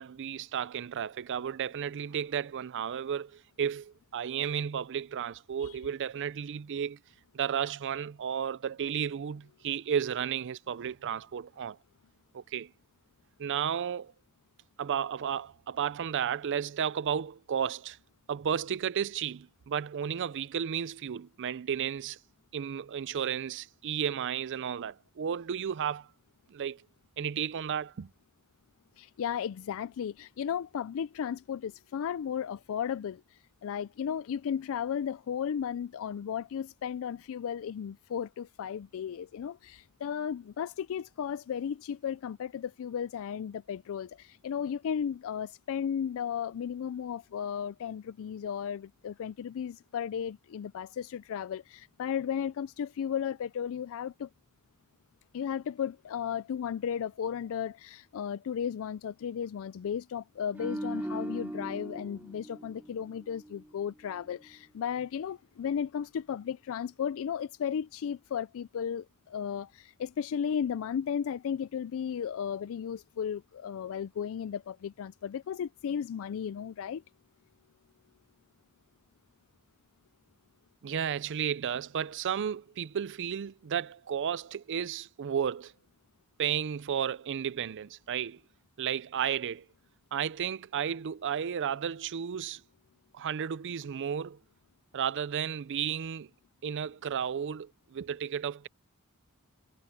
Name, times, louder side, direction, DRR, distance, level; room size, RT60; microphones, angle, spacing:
voice 1, 0.0-7.0 7.3-11.8 12.3-12.7 13.4-14.1 14.8-18.0 18.3-22.2 22.5-26.1 26.5-26.8 27.2-28.1 80.8-85.7 86.4-88.4 88.8-89.6 90.1-92.6 93.1-94.4 94.9-96.3 96.6-98.7, right 8 dB, 55° right, 0.4 m, -33 dB
voice 2, 29.0-54.3 55.3-77.0, left 8 dB, 65° left, 0.3 m, -35 dB
sound 1, 60.5-63.8 64.1-64.4, right 1 dB, 10° right, 0.7 m, -39 dB
head